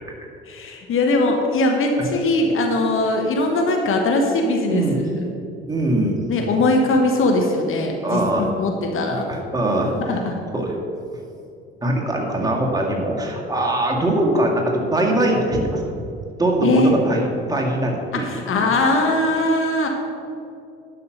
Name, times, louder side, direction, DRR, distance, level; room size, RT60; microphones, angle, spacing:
voice 1, 0.5-4.8 6.3-9.2 9.9-10.3 16.6-17.0 18.2-19.9, left 2 dB, 45° left, 2 dB, 1.3 m, -20 dB
voice 2, 5.7-6.2 8.0-8.5 9.1-10.2 10.5-10.8 11.8-15.9 16.3-18.3 18.6-18.7, right 1 dB, 10° right, -1 dB, 2.0 m, -22 dB
11.0 x 5.8 x 6.7 m, 2.5 s
figure-of-eight pair, 50°, 30 cm